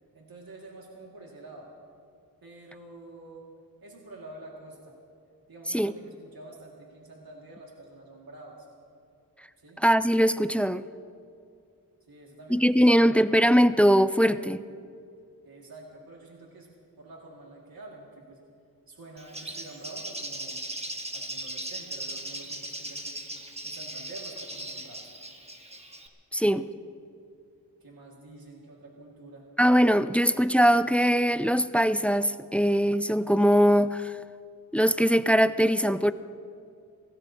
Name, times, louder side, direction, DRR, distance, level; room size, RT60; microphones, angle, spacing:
voice 1, 0.1-1.7 2.4-3.5 3.8-5.0 5.5-8.7 9.6-9.8 12.1-13.3 15.4-16.7 17.0-18.4 18.9-20.6 21.1-23.2 23.6-25.1 26.4-26.7 27.8-29.5 30.1-30.4, right 2 dB, 75° right, 2.1 m, -47 dB
voice 2, 9.8-10.8 12.5-14.6 26.3-26.7 29.6-34.2 34.7-36.1, equal, 5° left, 0.3 m, -21 dB
Bird, 19.2-26.1, right 1 dB, 15° right, 1.3 m, -38 dB
26.0 x 18.0 x 2.8 m
wide cardioid pair, 85°, 36 cm